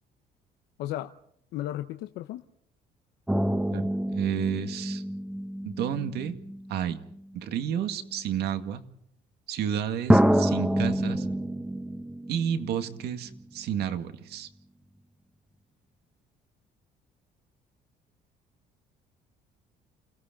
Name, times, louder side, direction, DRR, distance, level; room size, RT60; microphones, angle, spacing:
voice 1, 0.8-1.1 1.5-2.4, left 13 dB, 85° left, 8 dB, 1.0 m, -34 dB
sound 1, 3.3-7.2 8.1-8.2 10.1-13.4 13.7-13.8, right 1 dB, 5° right, 1.2 m, -27 dB
voice 2, 3.7-5.0 5.6-6.4 6.7-7.0 7.3-8.8 9.5-11.3 12.3-14.5, right 9 dB, 75° right, 8 dB, 2.1 m, -31 dB
29.0 x 17.5 x 5.3 m, 0.70 s
cardioid pair, 110°, 17 cm